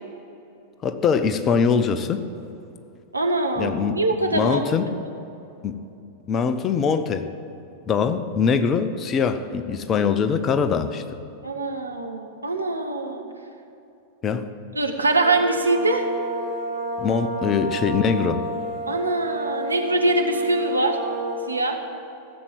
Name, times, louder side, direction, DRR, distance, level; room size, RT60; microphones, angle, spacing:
voice 1, 0.8-2.2 3.6-4.0 4.3-4.9 5.6-5.8 6.3-7.3 7.9-11.0 14.2-14.5 17.0-18.4, left 6 dB, 25° left, 10 dB, 0.7 m, -22 dB
voice 2, 3.1-4.6 11.4-13.2 14.7-16.0 18.9-21.0 21.5-21.8, right 2 dB, 80° right, 3 dB, 1.2 m, -23 dB
sound 1, 15.1-21.7, right 1 dB, 35° right, 3.7 m, -30 dB
15.5 x 7.5 x 7.6 m, 2.8 s
figure-of-eight pair, 90°, 0 cm